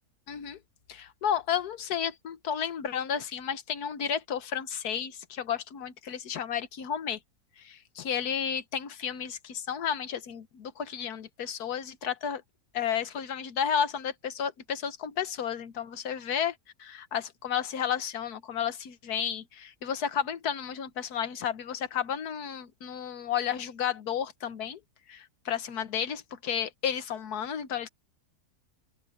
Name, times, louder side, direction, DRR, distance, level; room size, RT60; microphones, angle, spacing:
voice 1, 0.3-0.6 0.9-7.2 7.6-12.4 12.7-24.8 25.1-27.9, left 8 dB, 75° left, 1.6 m, -32 dB
open air
omnidirectional pair, 1.6 m